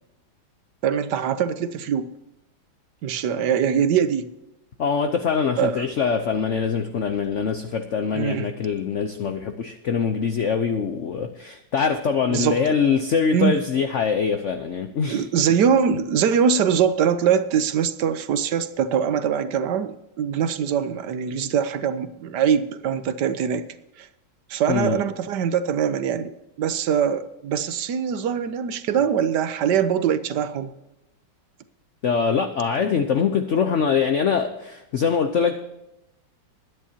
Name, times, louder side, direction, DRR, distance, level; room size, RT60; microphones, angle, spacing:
voice 1, 0.8-2.1 3.0-4.3 5.6-5.8 8.1-8.5 12.3-12.6 13.3-13.6 15.1-23.7 24.0-24.1 24.5-26.3 26.6-30.7, right 8 dB, 65° right, 12 dB, 1.3 m, -22 dB
voice 2, 4.8-15.2 24.7-25.0 32.0-35.6, left 6 dB, 60° left, 7 dB, 0.8 m, -23 dB
21.5 x 10.0 x 2.8 m, 0.97 s
omnidirectional pair, 2.2 m